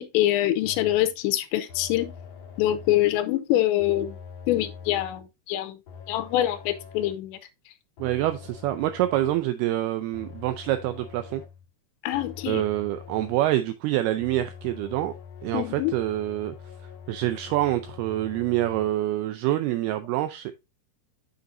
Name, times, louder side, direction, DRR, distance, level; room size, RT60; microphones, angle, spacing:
voice 1, 0.0-2.1 2.6-4.1 4.5-5.8 6.1-7.4 12.0-12.6 15.5-15.9, left 14 dB, 85° left, 3.0 m, -25 dB
sound 1, 0.6-1.2 1.7-3.2 3.8-5.3 5.9-7.3 8.0-9.4 10.1-11.7 12.1-13.5 14.2-18.9, left 7 dB, 60° left, 1.6 m, -44 dB
voice 2, 8.0-11.4 12.5-15.1 15.4-16.6 17.1-20.6, right 14 dB, 85° right, 2.2 m, -26 dB
7.9 x 6.7 x 2.6 m
omnidirectional pair, 5.1 m